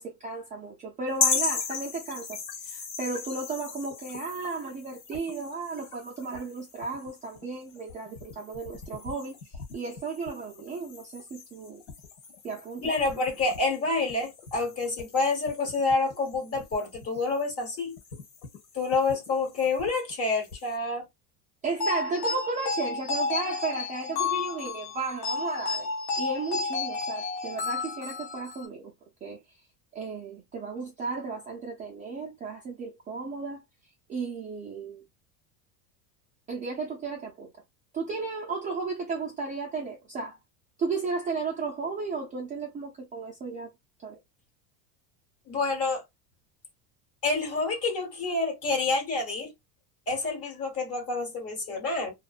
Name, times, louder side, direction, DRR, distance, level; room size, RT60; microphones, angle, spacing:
voice 1, 0.0-11.8 12.4-12.9 21.6-25.9 26.2-28.9 29.2-29.4 29.9-33.6 34.1-35.0 36.5-37.5 37.9-40.4 40.8-43.7 44.0-44.2, right 4 dB, 20° right, 0.4 m, -34 dB
sound 1, 1.1-20.8, left 5 dB, 80° left, 1.3 m, -38 dB
voice 2, 12.8-17.9 18.7-21.0 45.5-46.0 47.2-49.5 50.1-52.1, left 3 dB, 35° left, 1.2 m, -28 dB
sound 2, 21.8-28.7, left 4 dB, 60° left, 0.9 m, -31 dB
2.6 x 2.2 x 2.3 m
supercardioid pair, 135°, 44 cm